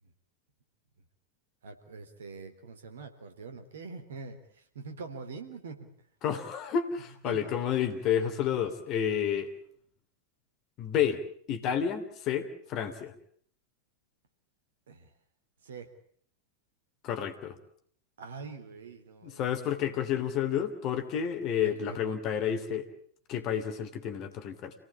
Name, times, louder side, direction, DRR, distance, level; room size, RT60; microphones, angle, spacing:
voice 1, 1.6-5.9 7.2-7.6 14.9-15.1 15.6-15.9 18.2-19.5 21.6-22.0, right 4 dB, 65° right, 7 dB, 3.5 m, -44 dB
voice 2, 6.2-9.5 10.8-11.2 11.5-13.1 17.0-17.6 19.2-22.9 23.3-24.7, left 8 dB, 35° left, 8 dB, 3.1 m, -30 dB
28.5 x 18.0 x 8.7 m, 0.62 s
figure-of-eight pair, 90°, 0 cm